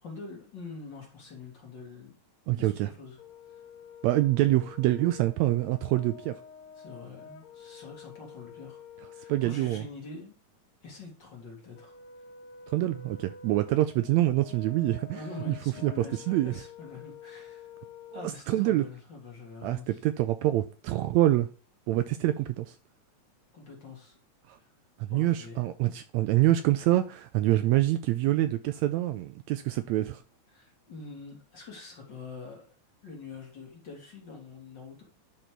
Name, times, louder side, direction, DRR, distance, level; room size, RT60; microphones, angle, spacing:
voice 1, 0.0-2.2 2.6-3.2 3.5-3.6 6.8-8.8 9.1-10.4 10.8-11.9 15.1-17.7 18.1-20.0 22.3-22.5 23.5-24.2 24.5-24.7 25.1-25.6 30.5-32.7 33.0-35.0, left 4 dB, 40° left, 2.1 m, -45 dB
voice 2, 2.5-2.9 4.0-6.3 9.3-9.8 12.7-15.2 15.5-15.6 15.8-16.5 18.1-18.2 18.5-18.9 19.6-21.5 21.9-22.7 24.5-24.6 25.0-30.2, right 15 dB, 80° right, 1.7 m, -26 dB
Brass instrument, 3.2-9.6 11.8-18.3, left 6 dB, 70° left, 2.0 m, -49 dB
9.9 x 4.2 x 4.5 m
omnidirectional pair, 3.5 m